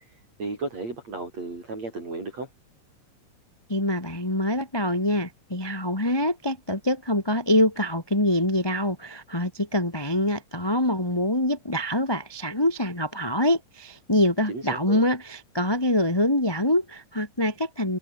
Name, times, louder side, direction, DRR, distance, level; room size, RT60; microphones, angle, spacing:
voice 1, 0.4-2.5 14.5-15.0, right 3 dB, 40° right, 8.8 m, -34 dB
voice 2, 3.7-18.0, left 1 dB, 5° left, 2.5 m, -25 dB
omnidirectional pair, 4.6 m